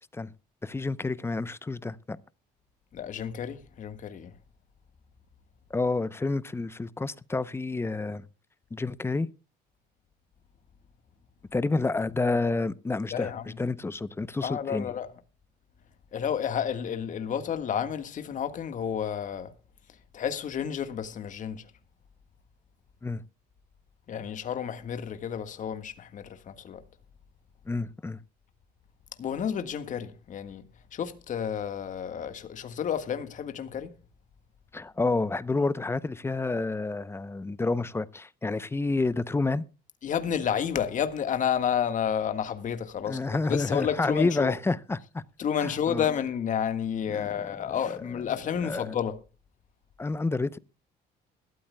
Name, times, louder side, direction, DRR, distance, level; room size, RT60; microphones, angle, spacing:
voice 1, 0.6-2.2 5.7-8.2 8.7-9.3 11.5-13.3 13.6-14.9 23.0-23.2 27.7-28.2 34.7-39.6 43.1-45.2 45.6-46.0 47.1-47.7 48.6-48.9 50.0-50.6, left 3 dB, 15° left, 0.7 m, -29 dB
voice 2, 2.9-4.3 13.1-13.6 14.4-15.1 16.1-19.5 20.1-21.6 24.1-26.8 29.2-30.6 30.9-33.9 40.0-44.5 45.4-49.2, left 8 dB, 50° left, 1.6 m, -31 dB
21.0 x 13.0 x 2.2 m
cardioid pair, 110°, 17 cm